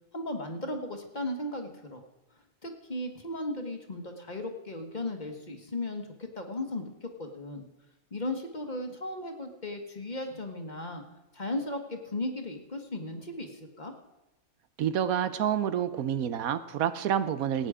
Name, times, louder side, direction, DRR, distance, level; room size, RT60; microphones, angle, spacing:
voice 1, 0.1-2.0 2.6-7.6 8.1-11.0 11.3-13.9, left 1 dB, 35° left, 4 dB, 1.5 m, -36 dB
voice 2, 14.8-17.7, right 9 dB, 90° right, 13 dB, 1.2 m, -28 dB
18.0 x 9.2 x 5.0 m, 0.99 s
omnidirectional pair, 1.4 m